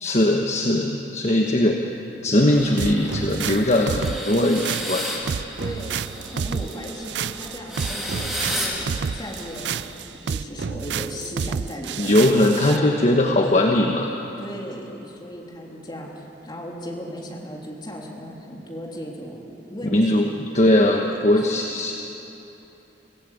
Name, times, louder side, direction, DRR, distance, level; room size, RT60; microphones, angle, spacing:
voice 1, 0.0-1.8 2.2-5.1 12.0-14.1 19.9-21.9, left 1 dB, 40° left, 1 dB, 1.2 m, -20 dB
sound 1, 2.5-10.5, equal, ahead, 3.5 m, -34 dB
sound 2, 2.8-12.8, right 6 dB, 80° right, 0.4 m, -30 dB
voice 2, 5.6-10.0 10.3-12.9 13.4-13.7 14.4-20.4 20.7-21.5, equal, 25° left, -2 dB, 3.4 m, -36 dB
25.0 x 16.0 x 8.5 m, 3.0 s
head